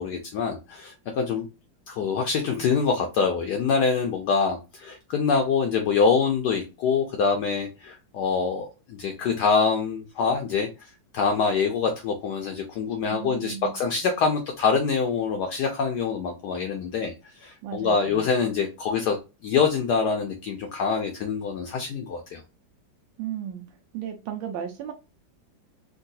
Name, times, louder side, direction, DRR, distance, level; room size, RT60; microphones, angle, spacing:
voice 1, 0.0-1.5 1.9-19.2 19.4-22.4, left 5 dB, 70° left, 3 dB, 1.0 m, -25 dB
voice 2, 13.1-13.7 17.6-18.3 23.2-23.6 23.9-24.9, right 9 dB, 90° right, 4 dB, 1.4 m, -35 dB
3.7 x 2.3 x 2.6 m, 0.28 s
omnidirectional pair, 2.1 m